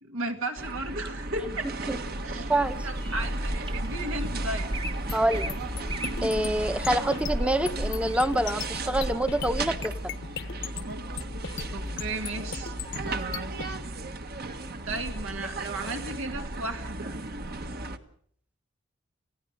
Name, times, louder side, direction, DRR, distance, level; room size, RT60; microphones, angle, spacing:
voice 1, 0.0-2.0 2.2-2.5 2.8-4.7 11.7-12.7 14.9-17.1, right 2 dB, 75° right, 4 dB, 2.3 m, -35 dB
sound 1, 0.6-18.0, right 2 dB, 45° right, 1.4 m, -34 dB
sound 2, 2.5-8.2, right 2 dB, 25° right, 1.2 m, -43 dB
sound 3, 5.1-13.7, left 4 dB, 60° left, 1.1 m, -37 dB
voice 2, 5.1-5.5 6.2-10.2, right 1 dB, 5° right, 10 dB, 1.0 m, -26 dB
28.5 x 16.0 x 6.7 m, 0.62 s
head